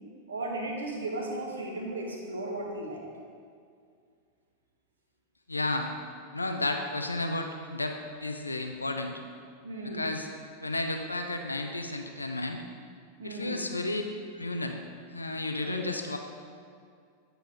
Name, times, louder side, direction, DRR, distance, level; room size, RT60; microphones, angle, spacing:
voice 1, 0.3-3.0 9.6-10.1 13.2-13.6 15.6-15.9, right 2 dB, 70° right, -1 dB, 1.4 m, -35 dB
voice 2, 5.5-5.9 6.3-9.2 9.8-10.3 10.6-12.6 13.2-14.0 14.3-14.8 15.1-16.2, left 2 dB, 80° left, 5 dB, 0.5 m, -32 dB
9.2 x 4.5 x 5.1 m, 2.2 s
figure-of-eight pair, 90°, 0 cm